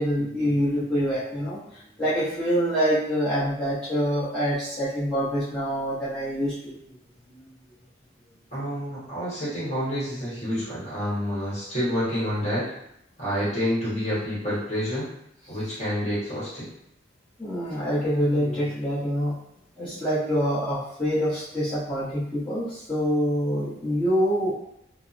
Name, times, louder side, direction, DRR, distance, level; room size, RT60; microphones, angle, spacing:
voice 1, 0.0-6.7 17.4-19.3 19.8-24.5, equal, 5° left, -15 dB, 0.9 m, -26 dB
voice 2, 8.5-12.7 13.2-15.1 15.5-16.7 19.8-19.9, equal, 35° left, -10 dB, 1.1 m, -28 dB
2.7 x 2.0 x 2.4 m, 0.77 s
head